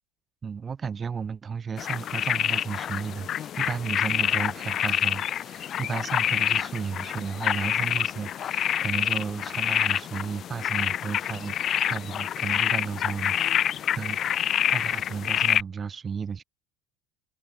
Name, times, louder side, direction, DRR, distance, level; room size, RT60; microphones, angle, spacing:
voice 1, 0.4-14.4 14.7-16.4, right 6 dB, 30° right, 1.0 m, -34 dB
sound 1, 1.8-15.6, left 10 dB, 40° left, 0.3 m, -27 dB
sound 2, 7.9-8.8 10.9-12.0, left 1 dB, 10° left, 2.2 m, -57 dB
figure-of-eight pair, 65°, 0 cm